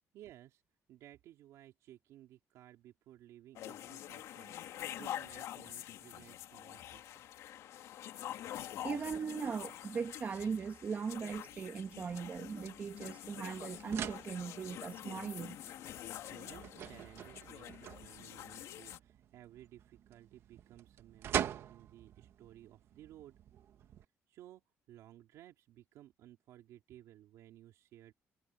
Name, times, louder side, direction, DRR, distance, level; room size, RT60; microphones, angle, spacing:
voice 1, 0.1-0.6 0.9-7.2 16.3-23.3 24.3-28.1, right 13 dB, 90° right, 3.2 m, -57 dB
sound 1, 3.6-19.0, left 12 dB, 80° left, 2.0 m, -46 dB
voice 2, 8.8-15.6, right 6 dB, 30° right, 1.0 m, -39 dB
sound 2, 11.1-24.0, right 10 dB, 60° right, 1.2 m, -45 dB
cardioid pair, 160°, 5 cm